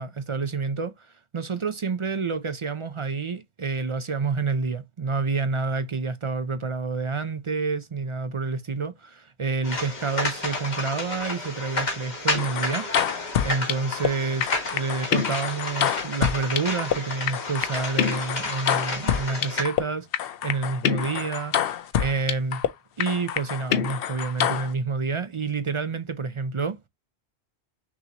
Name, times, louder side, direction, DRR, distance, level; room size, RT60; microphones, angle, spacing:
voice 1, 0.0-21.7 22.0-22.6 23.0-26.9, right 4 dB, 45° right, 0.4 m, -29 dB
sound 1, 9.6-19.6, left 2 dB, 45° left, 1.6 m, -31 dB
sound 2, 12.3-14.1 14.4-17.0 17.3-19.8 20.1-22.7 23.0-24.7, left 9 dB, 65° left, 0.7 m, -26 dB
6.2 x 2.8 x 2.8 m
omnidirectional pair, 1.1 m